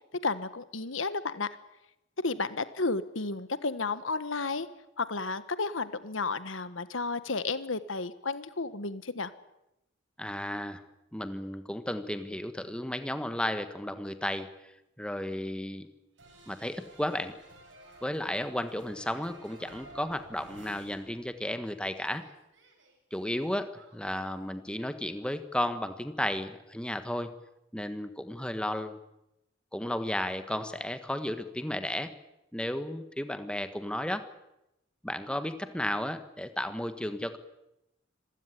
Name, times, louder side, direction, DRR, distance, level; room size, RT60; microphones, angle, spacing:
voice 1, 0.2-1.5 2.2-4.7 5.0-9.3, left 3 dB, 80° left, 14 dB, 1.4 m, -32 dB
voice 2, 10.2-10.8 11.1-14.5 15.0-15.9 16.5-17.4 18.0-22.3 23.1-27.3 27.7-29.0 29.7-32.1 32.5-34.3 35.0-37.4, left 1 dB, 5° left, 10 dB, 1.4 m, -33 dB
sound 1, 16.2-21.6 21.9-24.2, right 2 dB, 65° right, 7.5 m, -53 dB
26.0 x 16.0 x 9.9 m, 0.86 s
head